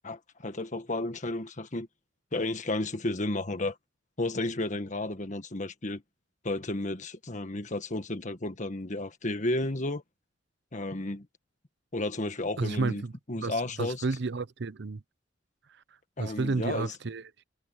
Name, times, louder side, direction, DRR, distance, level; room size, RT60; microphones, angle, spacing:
voice 1, 0.0-1.9 2.3-3.8 4.2-6.0 6.4-10.0 10.7-11.3 11.9-13.0 13.3-14.0 16.2-16.9, left 2 dB, 40° left, 1.6 m, -32 dB
voice 2, 12.6-13.1 13.4-15.0 16.2-17.4, right 3 dB, 65° right, 0.7 m, -31 dB
head